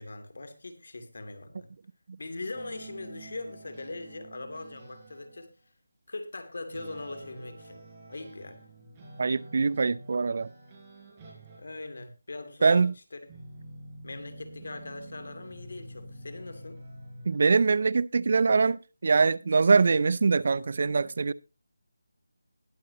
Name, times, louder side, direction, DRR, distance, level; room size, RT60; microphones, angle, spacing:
voice 1, 0.0-1.7 2.2-5.5 6.1-8.6 11.6-12.9 13.1-13.3 14.0-16.8, left 2 dB, 60° left, 2.6 m, -41 dB
sound 1, 2.5-5.4 6.7-11.9 13.3-17.4, right 1 dB, 15° right, 5.1 m, -48 dB
voice 2, 9.2-10.5 12.6-12.9 17.3-18.8 19.0-21.3, right 4 dB, 45° right, 0.5 m, -23 dB
20.5 x 7.6 x 2.9 m
figure-of-eight pair, 170°, 0 cm